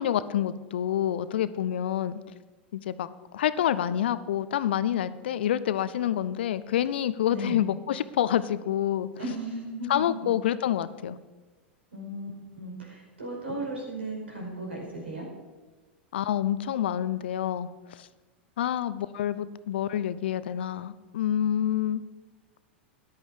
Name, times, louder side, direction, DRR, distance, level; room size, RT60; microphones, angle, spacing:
voice 1, 0.0-2.2 2.7-3.1 3.3-9.1 9.9-11.2 16.1-18.1 18.6-22.0, left 10 dB, 70° left, 15 dB, 0.7 m, -27 dB
voice 2, 9.2-10.0 11.9-12.3 12.6-15.2, right 1 dB, 80° right, -1 dB, 4.9 m, -35 dB
14.0 x 10.5 x 5.0 m, 1.3 s
hypercardioid pair, 90°, 6 cm